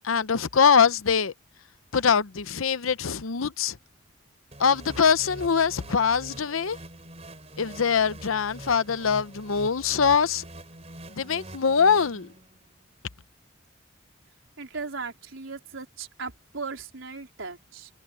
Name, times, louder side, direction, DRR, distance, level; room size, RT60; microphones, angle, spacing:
voice 1, 0.0-1.3 1.9-3.8 4.6-6.8 7.6-10.4 11.1-12.3, left 6 dB, 85° left, 0.8 m, -23 dB
sound 1, 4.5-12.7, right 1 dB, 30° right, 5.2 m, -44 dB
voice 2, 14.6-17.9, right 4 dB, 75° right, 4.0 m, -37 dB
head